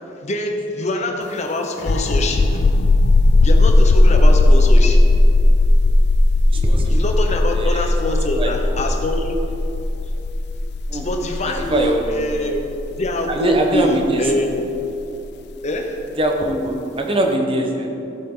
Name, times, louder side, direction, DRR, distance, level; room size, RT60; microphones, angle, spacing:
voice 1, 0.2-2.8 3.4-5.2 6.9-9.4 10.9-12.7 13.0-14.6 15.6-16.0, left 1 dB, 40° left, 3 dB, 1.0 m, -24 dB
sound 1, 1.8-15.2, left 2 dB, 60° left, 0.5 m, -16 dB
voice 2, 6.5-7.0 7.5-7.9 8.4-8.9 10.9-11.1 11.5-12.1 13.3-14.2 16.2-17.9, right 1 dB, 30° right, 2 dB, 1.1 m, -22 dB
15.0 x 7.6 x 3.9 m, 2.9 s
head